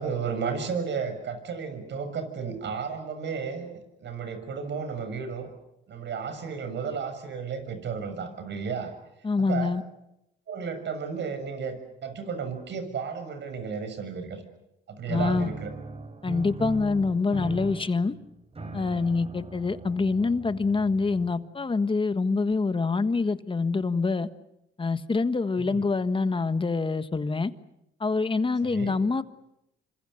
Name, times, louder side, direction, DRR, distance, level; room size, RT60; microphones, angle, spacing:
voice 1, 0.0-5.5 5.9-8.9 9.4-9.8 10.5-14.4 14.9-15.7 25.6-25.9 28.6-29.0, right 6 dB, 65° right, 9 dB, 6.7 m, -33 dB
voice 2, 9.2-9.8 15.1-15.5 16.2-18.1 18.7-24.3 24.8-27.5 28.0-29.2, left 4 dB, 25° left, 11 dB, 1.5 m, -25 dB
sound 1, 15.1-21.6, right 3 dB, 30° right, 3.7 m, -39 dB
28.0 x 26.0 x 6.7 m, 0.85 s
cardioid pair, 90°, 20 cm